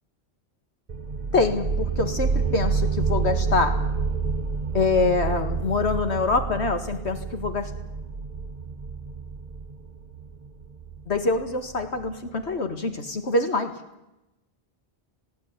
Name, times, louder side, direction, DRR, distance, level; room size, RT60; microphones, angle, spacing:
sound 1, 0.9-12.3, right 5 dB, 40° right, 0.9 m, -29 dB
voice 1, 1.3-3.7 4.7-7.7 11.1-13.7, left 3 dB, 80° left, 7 dB, 2.1 m, -25 dB
19.5 x 16.5 x 9.6 m, 0.91 s
omnidirectional pair, 1.1 m